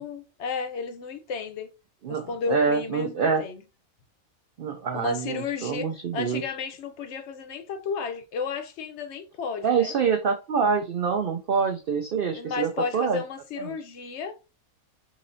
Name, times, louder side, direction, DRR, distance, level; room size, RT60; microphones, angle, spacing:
voice 1, 0.0-1.7 2.1-3.6 4.9-5.9 6.1-9.9 12.3-14.3, left 5 dB, 60° left, 0.8 m, -33 dB
voice 2, 2.0-3.4 4.6-6.5 9.6-13.2 13.6-13.8, right 6 dB, 80° right, 0.5 m, -26 dB
3.8 x 3.2 x 2.5 m
omnidirectional pair, 1.5 m